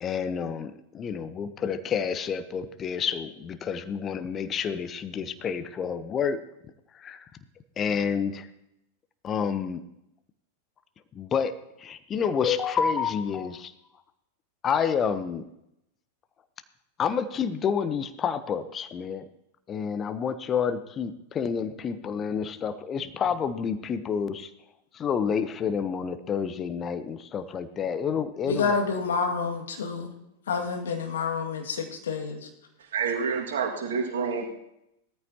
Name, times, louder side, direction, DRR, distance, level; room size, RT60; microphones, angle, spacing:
voice 1, 0.0-6.4 7.0-7.2 7.8-8.5 9.2-9.8 11.1-13.7 14.6-15.5 17.0-19.2 19.7-24.5 24.9-28.8, left 7 dB, 25° left, 12 dB, 0.8 m, -29 dB
voice 2, 28.4-30.1 30.5-32.4, left 5 dB, 65° left, 2 dB, 2.1 m, -28 dB
voice 3, 32.8-34.5, right 5 dB, 60° right, 2 dB, 2.0 m, -28 dB
18.5 x 13.5 x 2.9 m, 0.83 s
figure-of-eight pair, 90°, 0 cm